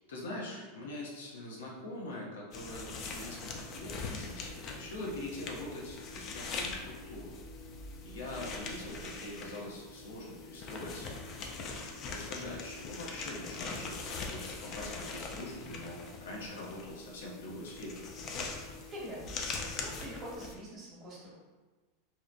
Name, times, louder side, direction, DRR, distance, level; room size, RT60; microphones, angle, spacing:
voice 1, 0.1-7.3 8.0-11.2 12.1-18.0, left 1 dB, 85° left, -3 dB, 0.7 m, -43 dB
sound 1, 2.5-20.5, left 3 dB, 40° left, 0.4 m, -42 dB
voice 2, 18.9-19.2 19.8-21.4, equal, 35° right, -5 dB, 1.1 m, -44 dB
2.8 x 2.0 x 2.5 m, 1.3 s
hypercardioid pair, 110°, 0 cm